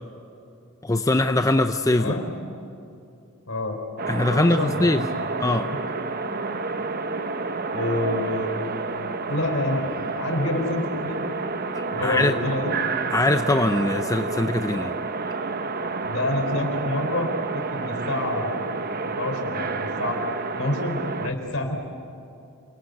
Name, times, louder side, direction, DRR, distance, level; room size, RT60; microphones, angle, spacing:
voice 1, 0.8-2.2 4.1-5.1 5.4-5.7 11.7-12.4 13.1-14.9, left 2 dB, 15° left, 8 dB, 0.6 m, -22 dB
voice 2, 2.0-2.3 3.5-3.8 4.3-5.4 7.7-8.7 9.3-11.3 11.9-12.8 16.0-18.7 19.1-20.2 20.5-21.8, left 1 dB, 65° left, 4 dB, 4.2 m, -28 dB
sound 1, 4.0-21.3, right 4 dB, 45° right, 0.9 m, -29 dB
27.5 x 20.5 x 9.4 m, 2.7 s
head